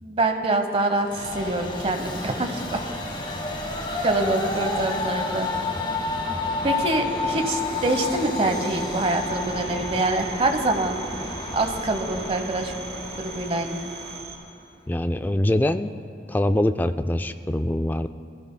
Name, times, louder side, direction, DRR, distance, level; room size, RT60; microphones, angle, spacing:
voice 1, 0.0-2.8 4.0-5.5 6.6-11.1 11.5-12.7 13.2-13.8, right 2 dB, 35° right, 5 dB, 1.0 m, -25 dB
Train, 1.0-14.5, left 3 dB, 30° left, 1.4 m, -30 dB
sound 1, 6.6-14.2, left 1 dB, 65° left, 3.1 m, -43 dB
Telephone, 8.5-14.4, right 6 dB, 65° right, 3.8 m, -41 dB
voice 2, 14.9-15.9 16.3-18.1, left 1 dB, 10° left, 9 dB, 0.3 m, -23 dB
23.0 x 15.5 x 2.2 m, 2.4 s
head